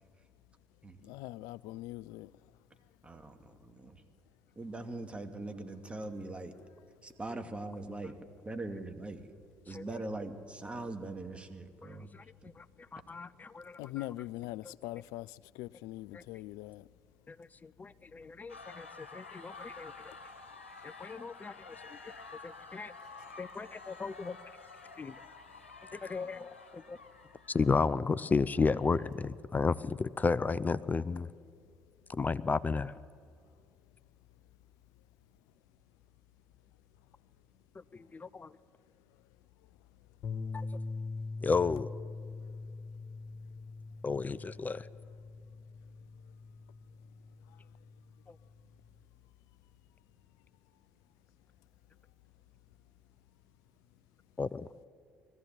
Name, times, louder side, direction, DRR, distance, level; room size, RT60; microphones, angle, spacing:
voice 1, 1.0-2.3 13.8-16.8, left 17 dB, 65° left, 0.4 m, -42 dB
voice 2, 3.0-4.0 4.6-6.5 7.0-8.2 8.5-9.3 9.7-12.1, right 2 dB, 20° right, 2.3 m, -41 dB
voice 3, 9.7-10.0 11.8-12.2 12.6-12.7 12.9-14.1 14.6-14.7 16.1-16.2 17.3-19.9 20.8-21.8 22.0-22.1 22.4-22.9 23.4-24.4 25.0-25.1 25.9-27.0 27.5-31.3 32.1-32.9 37.9-38.5 40.5-40.7 41.4-41.9 44.0-44.9 48.3-48.4 54.4-54.7, left 4 dB, 25° left, 0.6 m, -33 dB
sound 1, 18.5-29.2, left 3 dB, 90° left, 1.3 m, -51 dB
sound 2, 40.2-48.6, left 3 dB, 50° left, 2.4 m, -43 dB
20.5 x 14.5 x 9.1 m
hypercardioid pair, 55°, 6 cm